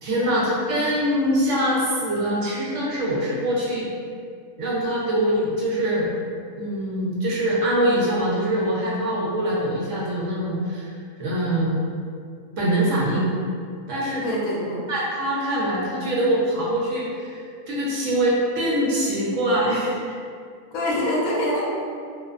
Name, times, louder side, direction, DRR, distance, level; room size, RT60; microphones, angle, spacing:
voice 1, 0.0-3.9 4.6-6.1 6.6-10.9 11.2-11.8 12.6-13.3 13.9-14.2 14.9-20.0, right 1 dB, 70° right, -6 dB, 0.8 m, -23 dB
voice 2, 14.2-14.8 20.7-21.6, left 1 dB, 80° left, -4 dB, 1.0 m, -25 dB
2.5 x 2.1 x 2.3 m, 2.2 s
omnidirectional pair, 1.5 m